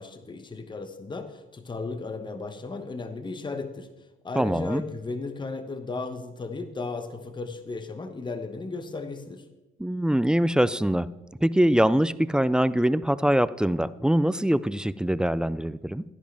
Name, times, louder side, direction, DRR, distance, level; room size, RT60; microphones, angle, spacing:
voice 1, 0.0-3.9 4.2-9.4, left 3 dB, 25° left, 8 dB, 1.0 m, -35 dB
voice 2, 4.3-4.8 9.8-11.1 11.4-16.0, equal, 5° right, 16 dB, 0.3 m, -23 dB
12.5 x 10.5 x 3.4 m, 1.1 s
cardioid pair, 90°, 20 cm